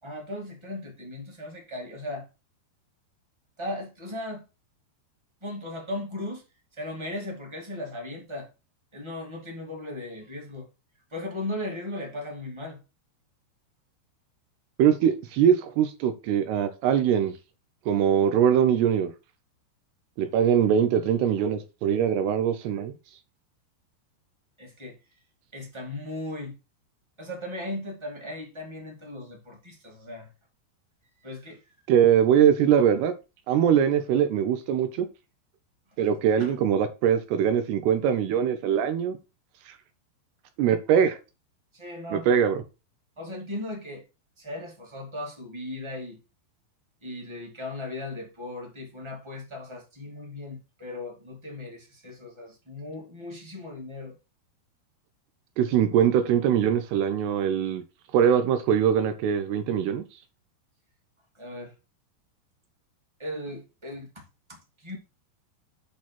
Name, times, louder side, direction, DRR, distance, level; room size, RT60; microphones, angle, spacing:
voice 1, 0.0-2.2 3.6-4.4 5.4-6.4 6.8-8.5 8.9-10.7 11.1-12.8 24.6-24.9 25.5-26.5 27.2-30.3 31.2-31.6 41.0-41.1 41.7-42.3 43.2-44.0 44.4-46.2 47.0-54.1 61.3-61.7 63.2-64.2 64.5-65.0, left 1 dB, 15° right, 1.2 m, -37 dB
voice 2, 14.8-17.3 17.9-19.1 20.2-22.9 31.9-33.1 33.5-35.1 36.0-39.2 39.7-39.8 40.6-41.2 42.1-42.6 55.6-57.8 58.1-60.0, right 8 dB, 80° right, 2.6 m, -22 dB
8.6 x 3.9 x 6.0 m
omnidirectional pair, 5.2 m